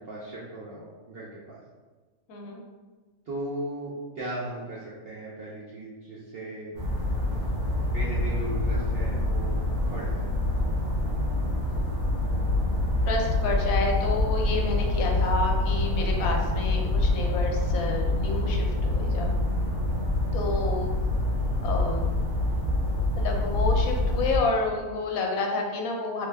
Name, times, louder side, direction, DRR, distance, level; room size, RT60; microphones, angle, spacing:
voice 1, 0.1-1.6 3.3-6.8 7.9-9.6 9.8-10.3, right 1 dB, 65° right, -7 dB, 0.6 m, -37 dB
voice 2, 2.3-2.6 13.1-19.3 20.3-20.9 21.6-22.1 23.2-26.3, left 3 dB, 75° left, 1 dB, 1.0 m, -29 dB
sound 1, 6.8-24.4, left 2 dB, 85° right, 1.3 m, -26 dB
3.3 x 2.1 x 3.3 m, 1.4 s
omnidirectional pair, 1.6 m